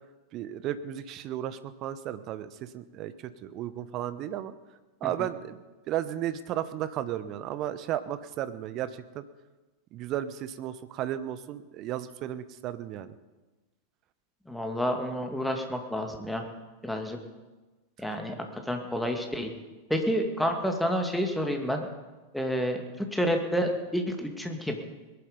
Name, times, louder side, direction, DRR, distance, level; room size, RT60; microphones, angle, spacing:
voice 1, 0.3-4.5 5.0-5.6 5.9-9.2 9.9-13.1, right 11 dB, 35° right, 13 dB, 0.9 m, -34 dB
voice 2, 14.5-16.4 16.8-17.2 18.0-19.5 19.9-21.9 22.3-24.8, equal, ahead, 3 dB, 2.2 m, -29 dB
21.0 x 11.5 x 5.3 m, 1.2 s
figure-of-eight pair, 90°, 0 cm